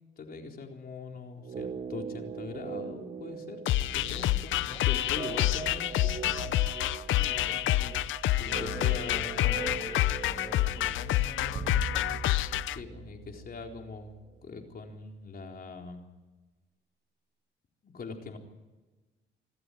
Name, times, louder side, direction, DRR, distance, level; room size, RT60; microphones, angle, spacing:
voice 1, 0.2-3.6 3.9-6.5 8.4-9.7 12.7-16.0 17.8-18.4, left 4 dB, 50° left, 3 dB, 4.1 m, -42 dB
sound 1, 1.4-13.5 13.8-13.9, right 6 dB, 35° right, 0.7 m, -42 dB
sound 2, 3.7-12.8, left 14 dB, 80° left, 0.7 m, -28 dB
voice 2, 4.6-4.9 7.1-12.4, left 2 dB, 30° left, 5 dB, 2.9 m, -47 dB
sound 3, 11.5-14.2, right 4 dB, 55° right, 5.3 m, -41 dB
27.0 x 12.5 x 9.4 m, 1.2 s
cardioid pair, 90°, 20 cm